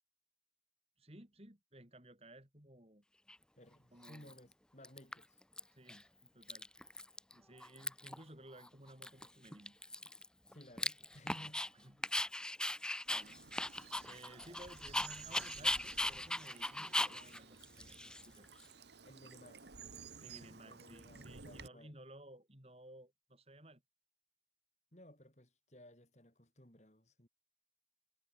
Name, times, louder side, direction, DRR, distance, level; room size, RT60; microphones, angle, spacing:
voice 1, 1.0-3.0 3.9-4.3 5.7-6.7 7.3-9.8 11.7-12.0 13.1-13.4 14.0-18.5 20.2-23.8, right 1 dB, 35° right, 4.8 m, -57 dB
Dog, 3.3-3.4 4.0-4.5 4.8-5.6 5.9-6.0 6.3-7.3 7.6-8.2 8.6-8.7 9.0-11.7 12.0-18.6, left 1 dB, 5° left, 0.8 m, -39 dB
voice 2, 3.6-5.4 10.5-11.7 19.0-19.8 20.1-22.0 24.9-27.3, left 1 dB, 40° left, 5.2 m, -58 dB
Bird vocalization bird call bird song / Stream, 13.1-21.7, right 5 dB, 75° right, 1.8 m, -55 dB
head